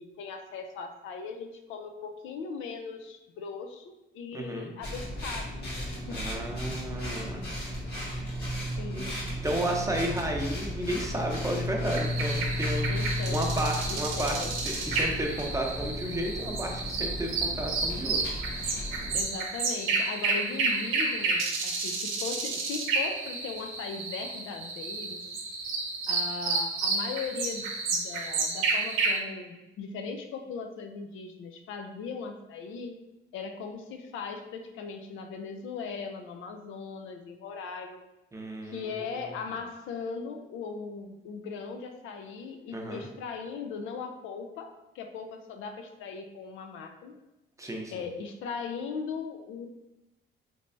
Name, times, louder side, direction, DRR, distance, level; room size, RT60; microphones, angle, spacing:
voice 1, 0.0-5.5 6.1-6.2 8.8-9.2 9.5-9.8 12.9-13.6 13.9-14.5 19.1-25.2 26.1-33.0 33.3-38.0 38.6-47.2 47.9-49.7, left 5 dB, 80° left, 5 dB, 0.5 m, -39 dB
voice 2, 4.3-4.7 6.1-7.5 8.9-12.9 13.3-18.2 38.3-38.8 42.7-43.1 47.6-47.9, right 1 dB, 15° right, 0 dB, 0.6 m, -32 dB
sound 1, 4.8-19.2, left 1 dB, 55° left, 1.5 m, -34 dB
sound 2, 11.9-29.2, right 3 dB, 90° right, 0.7 m, -31 dB
3.2 x 3.2 x 2.6 m, 0.96 s
cardioid pair, 90°, 20 cm